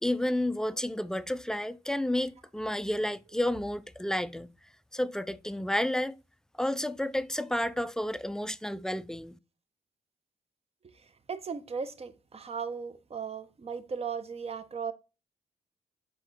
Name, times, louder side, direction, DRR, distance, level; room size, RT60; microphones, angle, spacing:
voice 1, 0.0-4.5 4.9-6.2 6.6-9.4, left 1 dB, 5° left, 0.3 m, -31 dB
voice 2, 10.8-14.9, right 6 dB, 40° right, 0.6 m, -37 dB
4.6 x 3.6 x 2.9 m
cardioid pair, 65°, 16 cm